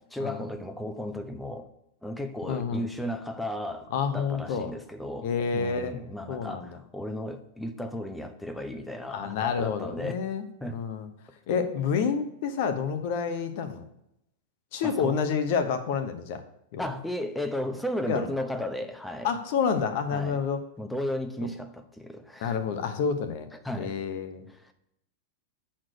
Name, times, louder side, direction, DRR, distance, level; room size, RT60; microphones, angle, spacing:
voice 1, 0.0-1.7 2.0-10.2 10.6-10.8 14.8-15.2 16.8-19.3 20.1-20.4 20.8-22.6 23.5-24.0 24.5-24.7, left 1 dB, 5° left, 8 dB, 0.8 m, -35 dB
voice 2, 2.5-2.8 3.9-4.7 5.2-6.0 6.3-6.8 9.1-11.1 11.5-13.8 14.7-16.4 16.7-16.9 18.1-18.3 19.2-20.6 22.4-23.5 23.8-24.4, left 6 dB, 50° left, 9 dB, 1.0 m, -29 dB
7.4 x 4.4 x 6.1 m, 0.79 s
figure-of-eight pair, 90°, 0 cm